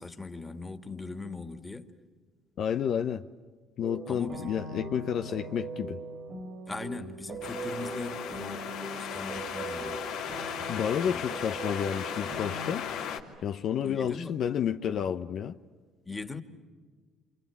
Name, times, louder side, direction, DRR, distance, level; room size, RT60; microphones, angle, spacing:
voice 1, 0.0-1.9 4.1-4.6 6.7-10.0 10.6-11.2 13.8-14.4 16.1-16.4, left 3 dB, 15° left, 2.3 m, -40 dB
voice 2, 2.6-3.3 3.8-6.0 10.7-12.9 13.4-15.6, left 8 dB, 60° left, 0.9 m, -30 dB
sound 1, 3.8-12.7, right 3 dB, 50° right, 2.7 m, -41 dB
sound 2, 7.4-13.2, left 8 dB, 85° left, 3.0 m, -36 dB
28.5 x 28.5 x 7.2 m
supercardioid pair, 90°, 0 cm